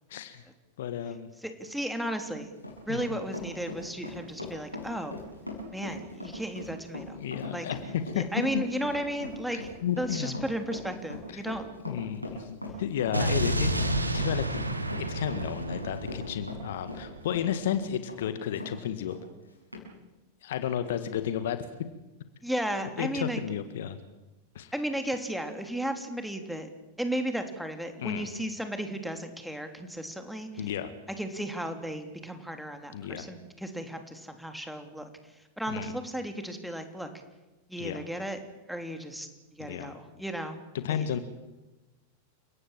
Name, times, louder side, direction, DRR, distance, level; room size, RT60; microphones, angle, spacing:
voice 1, 0.1-0.4 0.8-1.3 2.9-3.2 7.1-8.2 8.5-8.6 9.8-10.4 11.3-11.5 11.8-13.7 14.1-14.6 15.1-19.2 20.4-21.7 23.0-24.0 24.5-24.7 28.0-28.3 30.6-30.9 32.9-33.3 35.7-35.9 37.8-38.0 39.6-39.9 40.7-41.2, left 9 dB, 55° left, 11 dB, 1.7 m, -32 dB
voice 2, 1.4-2.5 2.9-5.2 5.7-7.2 7.5-7.7 8.1-11.7 13.2-13.3 22.4-23.4 24.7-26.7 27.0-30.7 31.2-35.1 35.6-37.1 37.7-38.4 38.7-40.6 40.9-41.1, right 1 dB, ahead, 6 dB, 3.1 m, -34 dB
Run, 2.1-18.7 19.1-19.2 19.7-19.9, left 2 dB, 90° left, 7.3 m, -40 dB
Explosion, 13.1-17.2, right 1 dB, 85° right, 2.2 m, -30 dB
29.5 x 18.0 x 7.5 m, 1.1 s
figure-of-eight pair, 90°, 0 cm